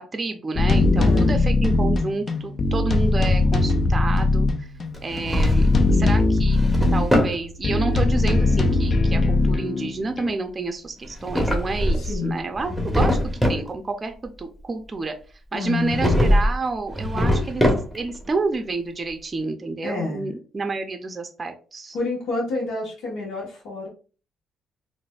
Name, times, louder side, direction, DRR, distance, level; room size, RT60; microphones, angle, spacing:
voice 1, 0.0-4.7 5.0-6.6 6.9-15.2 15.5-22.0, right 3 dB, 30° right, 5 dB, 0.5 m, -29 dB
sound 1, 0.6-5.0 5.4-7.1 7.6-10.3, left 2 dB, 40° left, 0.5 m, -20 dB
voice 2, 0.9-1.4 12.0-12.4 15.5-16.0 19.8-20.3 21.9-23.9, left 3 dB, 80° left, -4 dB, 1.1 m, -28 dB
Drawer open or close, 4.9-5.9 6.4-7.4 11.0-12.2 12.6-13.7 15.9-16.6 16.9-18.2, equal, 5° left, 0.9 m, -22 dB
4.0 x 2.5 x 2.3 m, 0.36 s
cardioid pair, 90°, 0 cm